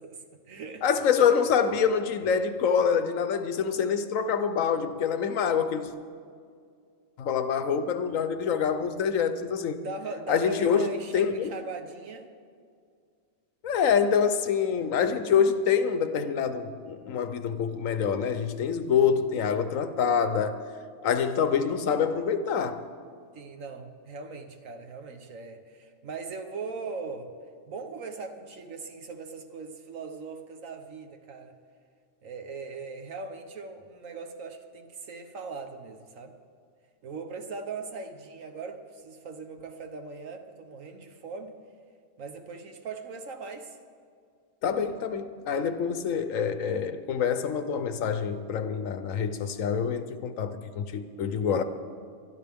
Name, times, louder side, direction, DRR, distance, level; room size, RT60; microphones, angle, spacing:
voice 1, 0.0-0.8 9.7-12.3 21.4-21.5 23.3-27.3 27.7-31.5 32.2-36.4 37.0-41.6 42.2-43.8, right 4 dB, 80° right, 1.5 m, -40 dB
voice 2, 0.8-5.9 7.2-9.8 10.3-11.5 13.6-20.6 21.0-22.8 44.6-51.6, left 7 dB, 80° left, 1.2 m, -26 dB
22.0 x 12.5 x 3.6 m
omnidirectional pair, 1.4 m